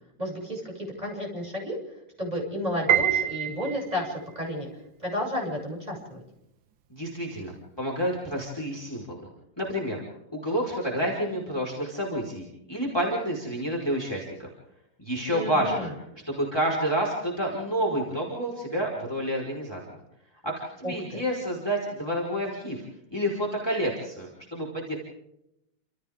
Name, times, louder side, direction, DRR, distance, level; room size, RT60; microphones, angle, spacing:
voice 1, 0.2-1.8 2.2-4.7 5.0-6.2 15.3-15.9 20.8-21.2, equal, 15° right, -2 dB, 7.5 m, -32 dB
Piano, 2.9-4.2, right 9 dB, 65° right, 2.0 m, -25 dB
voice 2, 6.9-9.3 9.6-10.0 10.3-14.5 15.0-15.9 16.3-19.8 20.4-22.8 23.1-24.9, equal, 10° left, -2 dB, 4.9 m, -29 dB
30.0 x 28.0 x 3.7 m, 0.83 s
omnidirectional pair, 2.4 m